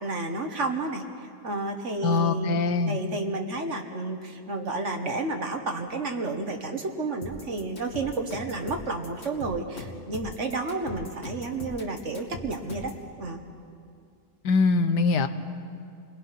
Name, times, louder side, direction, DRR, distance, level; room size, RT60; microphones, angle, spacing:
voice 1, 0.0-2.6 2.9-12.9 13.2-13.4, right 3 dB, 45° right, 5 dB, 1.8 m, -31 dB
voice 2, 2.0-3.0 14.4-15.3, left 4 dB, 90° left, 10 dB, 1.6 m, -23 dB
sound 1, 7.2-13.1, left 3 dB, 40° left, 2.3 m, -40 dB
29.5 x 20.5 x 5.9 m, 2.3 s
omnidirectional pair, 1.7 m